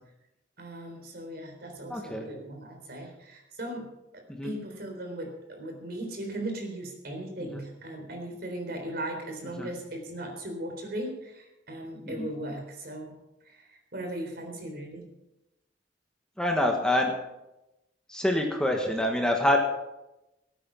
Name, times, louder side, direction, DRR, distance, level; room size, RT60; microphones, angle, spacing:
voice 1, 0.6-3.9 4.1-13.2 13.4-15.1, right 1 dB, 55° right, 3 dB, 3.9 m, -38 dB
voice 2, 1.9-2.3 4.4-4.5 9.6-9.7 12.1-12.3 16.4-17.1 18.1-19.6, left 1 dB, 5° left, 2 dB, 1.4 m, -26 dB
18.0 x 9.2 x 5.7 m, 0.94 s
head